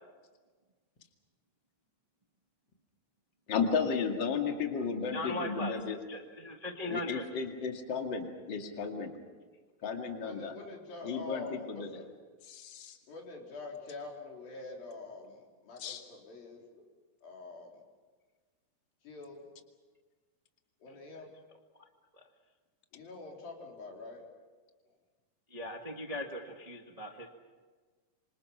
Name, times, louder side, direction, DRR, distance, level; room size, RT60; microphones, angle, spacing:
voice 1, 3.5-6.0 6.9-9.2 9.8-10.5 11.0-12.0 12.5-13.0 15.8-16.0, left 5 dB, 35° left, 3 dB, 2.5 m, -34 dB
voice 2, 5.1-5.7 6.1-7.2 25.5-27.3, left 1 dB, 30° right, 2 dB, 0.7 m, -39 dB
voice 3, 10.2-12.1 13.1-16.8 17.2-17.7 19.0-19.5 20.8-21.3 22.9-24.2, left 3 dB, 80° left, -1 dB, 5.8 m, -45 dB
27.0 x 26.5 x 5.8 m, 1.4 s
omnidirectional pair, 4.1 m